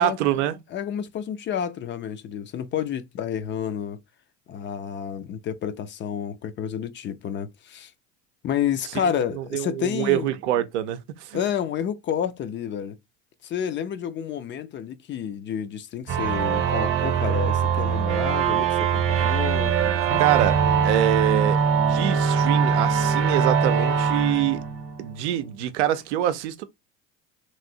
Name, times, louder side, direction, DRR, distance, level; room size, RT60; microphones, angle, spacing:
voice 1, 0.0-0.6 9.0-11.4 20.2-20.6 20.8-24.6 25.0-26.6, right 12 dB, 80° right, 0.5 m, -25 dB
voice 2, 0.7-4.0 4.5-7.9 8.4-10.3 11.3-13.0 13.4-20.2, left 8 dB, 35° left, 0.4 m, -30 dB
sound 1, 16.1-25.4, right 7 dB, 40° right, 0.7 m, -22 dB
3.1 x 2.6 x 2.5 m
hypercardioid pair, 85°, 34 cm